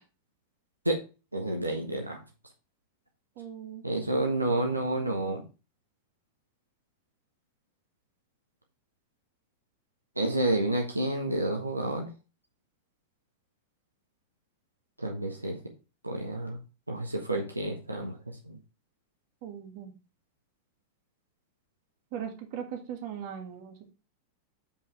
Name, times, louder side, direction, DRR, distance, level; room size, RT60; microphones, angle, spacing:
voice 1, 1.3-2.2 3.8-5.4 10.2-12.1 15.0-15.6 16.0-16.6 16.9-18.6, right 1 dB, 85° right, 2 dB, 1.3 m, -29 dB
voice 2, 3.4-3.8 19.4-19.9 22.1-23.9, right 8 dB, 45° right, 4 dB, 1.9 m, -39 dB
7.1 x 5.4 x 4.7 m, 0.31 s
figure-of-eight pair, 90°, 0 cm